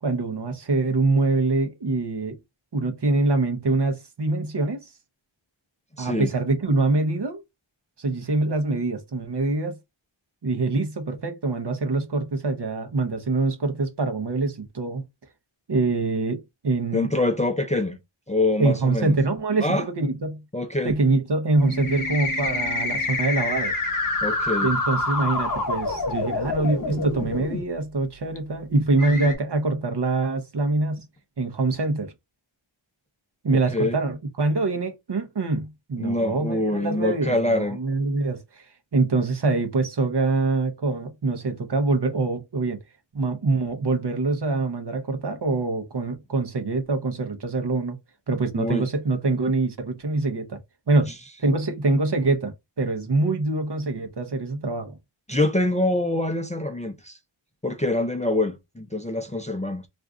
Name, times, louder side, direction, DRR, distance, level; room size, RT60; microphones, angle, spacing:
voice 1, 0.0-2.4 2.7-4.9 6.0-7.4 8.0-9.8 10.4-15.0 15.7-17.1 18.6-20.4 20.8-23.7 24.6-31.1 31.4-32.1 33.4-38.7 38.9-42.8 43.1-48.0 48.3-50.6 50.9-51.1 51.4-55.0, right 3 dB, 55° right, 0.8 m, -24 dB
voice 2, 6.0-6.3 16.9-18.0 18.3-19.1 19.6-19.9 20.5-20.9 24.2-24.7 33.5-34.0 36.0-37.8 48.6-48.8 55.3-57.2 57.6-59.9, left 2 dB, 15° left, 0.4 m, -25 dB
sound 1, 21.6-27.6 28.4-28.5 29.0-29.3, left 2 dB, 40° left, 0.9 m, -27 dB
2.5 x 2.3 x 3.5 m
wide cardioid pair, 45°, 49 cm